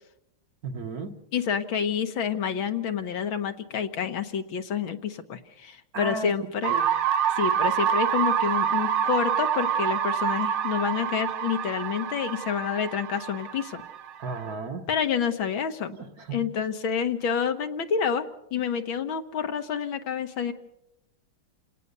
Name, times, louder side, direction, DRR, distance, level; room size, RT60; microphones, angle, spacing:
voice 1, 0.6-1.2 5.9-6.3 6.7-6.9 14.2-14.9 15.9-16.5, right 3 dB, 50° right, 6 dB, 1.6 m, -34 dB
voice 2, 1.3-6.7 7.3-13.8 14.9-15.9 16.3-20.5, left 7 dB, 70° left, 8 dB, 2.1 m, -28 dB
sound 1, 6.6-14.5, right 9 dB, 80° right, 1.9 m, -27 dB
28.5 x 18.5 x 6.8 m, 0.81 s
omnidirectional pair, 2.3 m